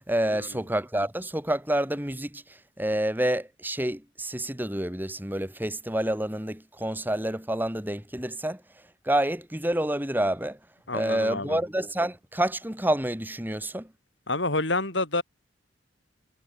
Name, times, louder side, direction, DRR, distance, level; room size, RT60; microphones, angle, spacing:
voice 1, 0.1-2.4 2.8-8.6 9.0-10.6 10.9-13.9, right 1 dB, 10° right, 3.3 m, -28 dB
voice 2, 10.9-11.6 14.3-15.2, left 2 dB, 65° left, 5.5 m, -28 dB
head